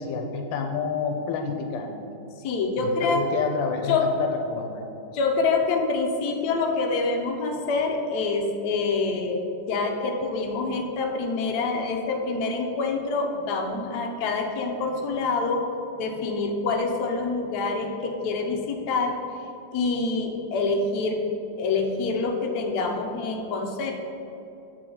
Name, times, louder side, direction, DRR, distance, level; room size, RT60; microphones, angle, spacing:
voice 1, 0.0-1.9 2.8-4.8, left 5 dB, 90° left, 4 dB, 1.4 m, -29 dB
voice 2, 2.4-3.2 3.9-4.0 5.1-9.4 9.7-15.6 15.9-19.1 19.7-21.2 21.6-23.9, left 3 dB, 65° left, 1 dB, 1.2 m, -26 dB
6.9 x 4.9 x 3.8 m, 2.8 s
omnidirectional pair, 2.0 m